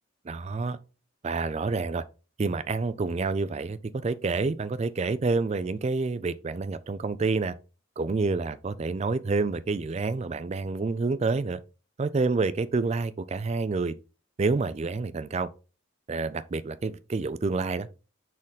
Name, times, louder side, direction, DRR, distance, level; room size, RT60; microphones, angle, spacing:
voice 1, 0.3-0.8 1.2-2.0 2.4-7.6 8.0-11.6 12.0-13.9 14.4-15.5 16.1-17.9, right 3 dB, 30° right, 0.3 m, -28 dB
6.4 x 3.7 x 3.9 m
head